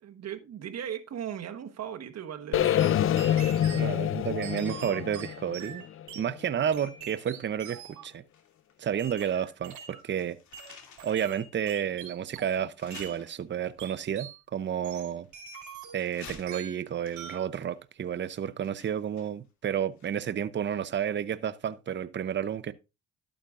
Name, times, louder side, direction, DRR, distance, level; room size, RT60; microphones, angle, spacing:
voice 1, 0.0-2.9, right 9 dB, 60° right, 1.3 m, -38 dB
sound 1, 2.5-6.6, left 11 dB, 45° left, 0.4 m, -27 dB
sound 2, 2.6-3.9 4.4-6.3 6.7-8.1 9.0-10.1 10.5-12.6 12.9-13.2 13.8-14.4 14.8-16.2 16.5-16.8 17.2-17.5, right 8 dB, 75° right, 2.8 m, -44 dB
voice 2, 3.7-5.8 6.2-8.2 8.8-10.4 11.0-15.3 15.9-22.7, right 9 dB, 40° right, 0.7 m, -31 dB
sound 3, 8.3-9.5 9.8-11.4 11.9-12.0 12.7-13.8 14.6-15.6 16.0-20.4 20.7-20.8, left 6 dB, 70° left, 2.6 m, -52 dB
12.0 x 8.7 x 2.5 m
cardioid pair, 90°, 30 cm